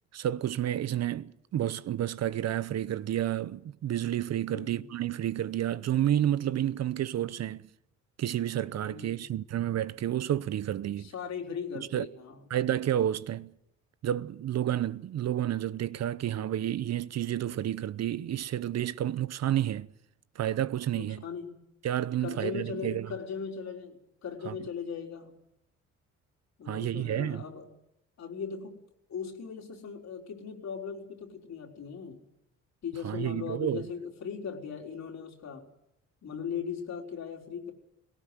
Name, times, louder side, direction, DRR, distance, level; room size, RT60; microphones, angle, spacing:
voice 1, 0.1-7.6 8.2-11.1 11.7-12.1 12.5-13.5 14.0-19.9 20.4-21.2 21.8-23.1 24.5-24.6 26.7-27.4 33.0-33.9, right 11 dB, 60° right, 0.8 m, -30 dB
voice 2, 4.5-4.9 8.8-9.2 11.0-12.4 20.9-21.6 22.2-25.4 26.6-27.7 28.2-28.8 29.1-32.2 32.8-35.7 36.2-37.7, left 7 dB, 65° left, 4.1 m, -38 dB
18.5 x 17.5 x 9.5 m
cardioid pair, 90°, 30 cm